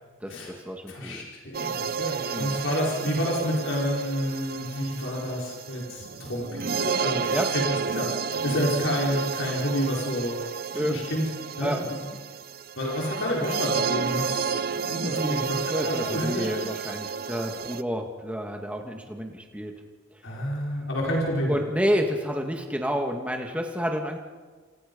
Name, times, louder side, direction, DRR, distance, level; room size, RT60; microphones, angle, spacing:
voice 1, 0.2-1.3 2.3-2.6 7.3-7.5 10.7-11.0 11.6-11.8 15.0-15.4 15.7-19.7 21.5-24.2, equal, 5° right, 3 dB, 2.2 m, -29 dB
voice 2, 0.9-10.4 10.7-11.2 11.6-12.0 12.8-15.6 15.8-16.7 20.2-21.6, equal, 70° left, -3 dB, 4.9 m, -29 dB
sound 1, 1.5-17.8, right 6 dB, 50° right, 0.7 m, -31 dB
29.5 x 27.0 x 5.5 m, 1.5 s
head